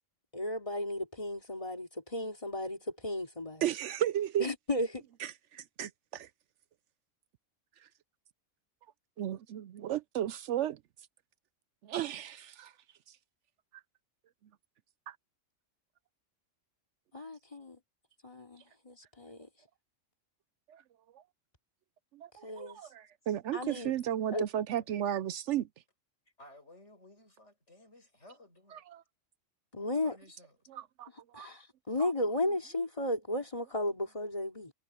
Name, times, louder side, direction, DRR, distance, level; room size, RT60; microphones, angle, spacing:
voice 1, 0.3-3.6 4.4-5.0 17.1-17.8 18.2-19.5 22.4-22.8 23.5-23.9 24.3-24.4 29.7-30.2 31.3-34.7, left 1 dB, 25° left, 3.0 m, -34 dB
voice 2, 3.6-4.5 5.2-6.3 9.2-10.8 11.8-12.7 15.1-15.2 20.7-20.8 22.1-25.7 28.9-29.0 30.7-31.1 31.3-31.5 32.0-32.1, right 11 dB, 70° right, 0.8 m, -34 dB
voice 3, 26.4-28.8 29.8-30.7, left 1 dB, 60° left, 7.8 m, -57 dB
omnidirectional pair, 1.3 m